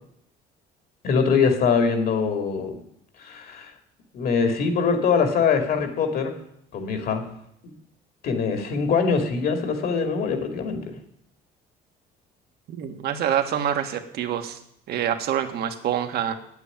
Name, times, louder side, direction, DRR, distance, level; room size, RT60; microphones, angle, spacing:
voice 1, 1.0-2.7 3.2-3.7 4.1-6.3 6.7-7.2 7.6-7.7 8.2-10.8, left 5 dB, 65° left, 6 dB, 2.5 m, -23 dB
voice 2, 12.7-14.6 14.9-16.3, right 10 dB, 70° right, 7 dB, 1.5 m, -26 dB
9.3 x 8.1 x 9.0 m, 0.74 s
cardioid pair, 110°, 17 cm